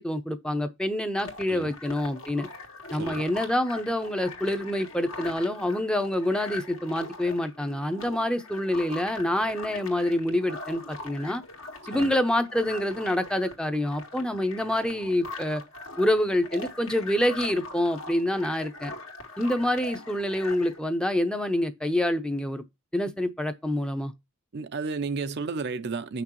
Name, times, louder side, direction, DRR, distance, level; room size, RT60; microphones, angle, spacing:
voice 1, 0.0-2.5 2.9-11.4 11.9-15.6 16.0-18.9 19.4-22.6 22.9-24.1, left 1 dB, 5° left, 0.6 m, -27 dB
sound 1, 1.2-20.8, left 2 dB, 70° left, 2.0 m, -41 dB
voice 2, 24.5-26.2, right 4 dB, 50° right, 0.5 m, -32 dB
7.6 x 6.0 x 3.1 m
head